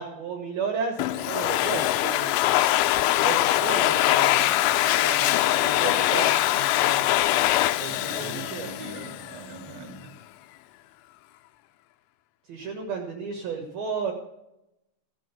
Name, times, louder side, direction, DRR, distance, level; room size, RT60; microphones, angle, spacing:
voice 1, 0.0-2.6 3.2-4.6 4.9-7.2 7.8-8.7 12.5-14.1, right 5 dB, 65° right, 1 dB, 2.8 m, -33 dB
Domestic sounds home sounds, 1.0-9.4, left 15 dB, 80° left, 2.9 m, -23 dB
voice 2, 7.8-10.2, right 2 dB, 35° right, 0 dB, 2.5 m, -42 dB
17.0 x 6.3 x 8.2 m, 0.88 s
omnidirectional pair, 5.7 m